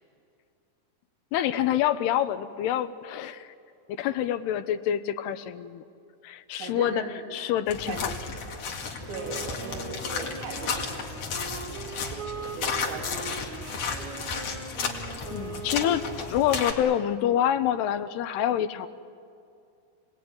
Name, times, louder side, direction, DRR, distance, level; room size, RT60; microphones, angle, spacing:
voice 1, 1.3-3.5 4.0-5.8 6.2-7.0 7.3-8.1 15.3-16.0 16.3-18.9, left 10 dB, 75° left, 10 dB, 2.6 m, -26 dB
voice 2, 6.6-7.4 7.9-8.1 9.1-11.1 11.4-14.3, right 4 dB, 75° right, -1 dB, 5.1 m, -39 dB
sound 1, 7.7-16.7, left 5 dB, 45° left, 2.5 m, -33 dB
Wind instrument woodwind instrument, 9.1-16.7, right 4 dB, 50° right, 1.8 m, -41 dB
28.5 x 19.5 x 9.5 m, 2.4 s
omnidirectional pair, 5.2 m